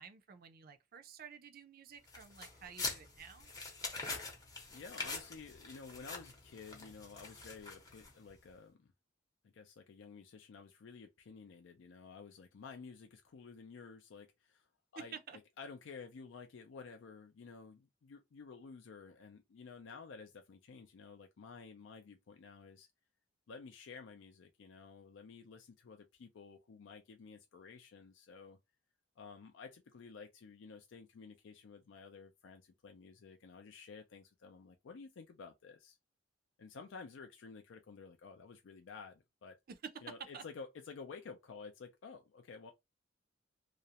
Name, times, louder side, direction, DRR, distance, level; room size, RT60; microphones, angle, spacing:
voice 1, 0.0-3.5 15.0-15.4 39.7-39.9 40.3-40.4, right 6 dB, 50° right, 0.4 m, -51 dB
Counting Money (Bills), 2.1-8.3, left 3 dB, 20° left, 0.7 m, -44 dB
voice 2, 4.7-8.9 9.4-14.7 14.9-22.9 23.5-28.6 29.2-36.0 36.6-39.6 40.0-42.7, left 5 dB, 70° left, 0.4 m, -52 dB
2.4 x 2.0 x 2.8 m
head